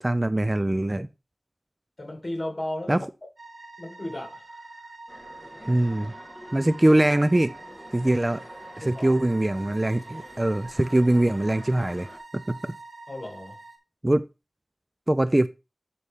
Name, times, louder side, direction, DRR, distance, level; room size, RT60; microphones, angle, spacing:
voice 1, 0.0-1.1 2.9-3.0 5.7-6.1 6.5-7.5 7.9-8.4 8.8-12.1 12.3-12.7 14.0-14.3 15.1-15.5, right 1 dB, 25° right, 0.4 m, -22 dB
voice 2, 2.0-3.1 3.8-4.7 8.8-9.1 13.1-13.6, left 1 dB, 40° left, 2.6 m, -35 dB
sound 1, 3.4-13.8, right 3 dB, 55° right, 1.4 m, -45 dB
sound 2, 5.1-12.2, equal, ahead, 1.5 m, -47 dB
10.5 x 4.2 x 3.6 m
wide cardioid pair, 75°, 0 cm